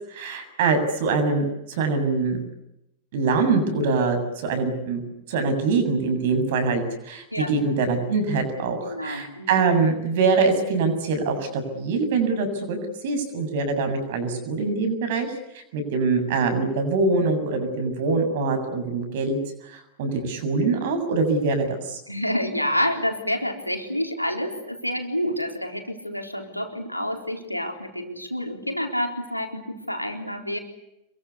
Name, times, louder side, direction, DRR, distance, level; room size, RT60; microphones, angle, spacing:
voice 1, 0.1-2.4 3.1-5.0 5.3-12.8 13.0-22.0, right 4 dB, 55° right, 7 dB, 7.2 m, -24 dB
voice 2, 8.8-9.6 22.1-30.6, left 1 dB, 90° left, 4 dB, 4.1 m, -28 dB
27.5 x 23.5 x 8.3 m, 0.88 s
figure-of-eight pair, 90°, 0 cm